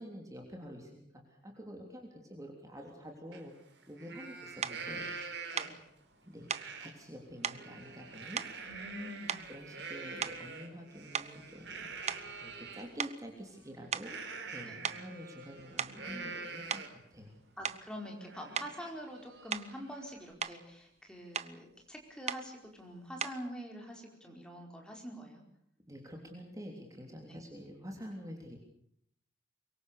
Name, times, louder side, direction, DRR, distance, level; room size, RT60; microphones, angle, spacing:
voice 1, 0.0-3.6 3.9-5.4 6.2-8.4 9.0-9.1 9.5-14.2 14.5-17.4 25.9-28.6, equal, 20° right, 2 dB, 3.3 m, -48 dB
Livestock farm animals working animals, 3.3-3.4 3.8-5.9 6.5-6.9 7.3-12.9 14.0-17.1 17.5-17.6 18.0-20.3, right 4 dB, 70° right, 4.2 m, -45 dB
sound 1, 4.6-4.8 5.6-5.8 6.5-6.7 7.4-7.7 8.4-9.0 9.3-9.7 10.2-10.5 11.1-12.7 13.0-13.2 13.9-14.2 14.8-15.1 15.6-16.1 16.7-16.9 17.6-17.9 18.5-18.8 19.5-19.8 20.2-20.6 21.3-21.6 22.3-22.5 23.2-23.5, right 7 dB, 35° right, 0.9 m, -38 dB
voice 2, 5.5-5.8 8.6-9.4 12.0-12.1 14.7-14.8 15.8-16.4 17.6-25.4 27.3-27.4, equal, 5° left, 1 dB, 4.7 m, -46 dB
24.5 x 23.0 x 6.8 m, 0.68 s
head